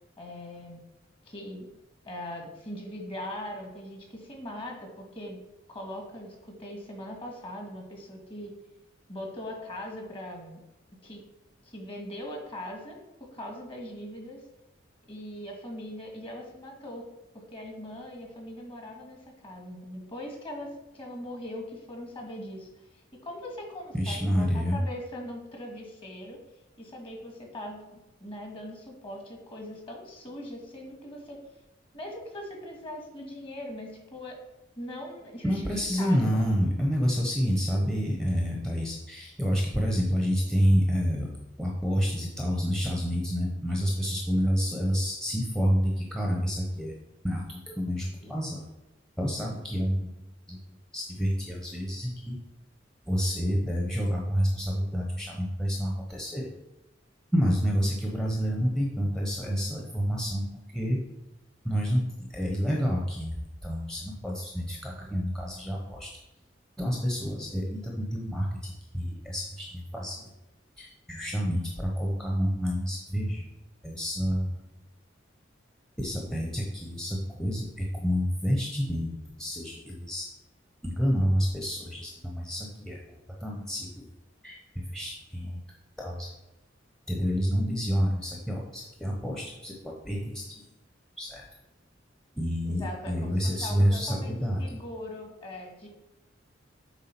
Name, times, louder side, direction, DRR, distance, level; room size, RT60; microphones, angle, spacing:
voice 1, 0.2-0.8 1.2-1.7 2.0-5.4 5.7-8.5 9.1-10.6 11.0-11.2 11.6-14.4 15.1-17.0 17.3-22.9 23.2-26.4 26.8-31.4 31.9-34.3 34.8-35.7 36.0-36.4 85.4-85.6 92.7-95.9, left 1 dB, 30° left, 1 dB, 1.7 m, -40 dB
voice 2, 23.9-24.8 35.4-41.3 41.6-46.9 47.2-48.7 49.2-50.6 50.9-52.4 53.1-56.5 57.3-60.4 60.7-61.0 61.6-62.0 62.3-66.1 66.8-70.3 70.8-73.5 73.8-74.6 76.0-80.3 80.8-83.0 83.4-84.1 84.4-84.6 84.9-85.6 86.0-86.3 87.1-90.6 91.2-91.4 92.4-94.8, equal, 5° left, -1 dB, 0.9 m, -28 dB
8.2 x 3.7 x 5.9 m, 0.97 s
head